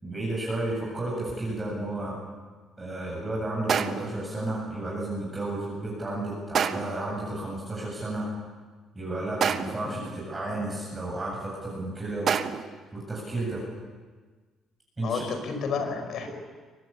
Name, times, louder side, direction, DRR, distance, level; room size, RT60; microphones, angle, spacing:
voice 1, 0.0-2.2 2.8-8.3 8.9-12.3 12.9-13.6 15.0-15.2, right 2 dB, 20° right, -4 dB, 7.8 m, -32 dB
sound 1, 3.7-4.2 6.5-7.1 9.4-9.9 12.3-12.8, right 7 dB, 50° right, 1.1 m, -27 dB
voice 2, 15.0-16.3, left 5 dB, 60° left, 7 dB, 5.0 m, -31 dB
23.5 x 20.0 x 8.6 m, 1.4 s
cardioid pair, 115°, 0 cm